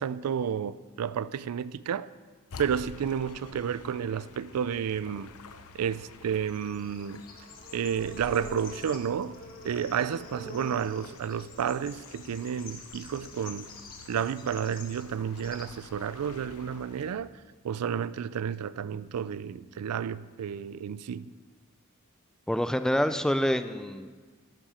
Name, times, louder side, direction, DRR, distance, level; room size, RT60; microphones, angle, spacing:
voice 1, 0.0-2.1 2.6-5.3 5.7-7.2 7.7-9.4 9.6-13.7 14.1-17.3 17.6-21.3, right 8 dB, 90° right, 0.4 m, -31 dB
sound 1, 2.5-17.2, left 4 dB, 85° left, 0.7 m, -50 dB
Bird / Insect, 6.2-16.8, left 3 dB, 40° left, 1.5 m, -47 dB
voice 2, 22.5-24.1, equal, 5° left, 0.3 m, -27 dB
11.0 x 10.0 x 5.0 m
head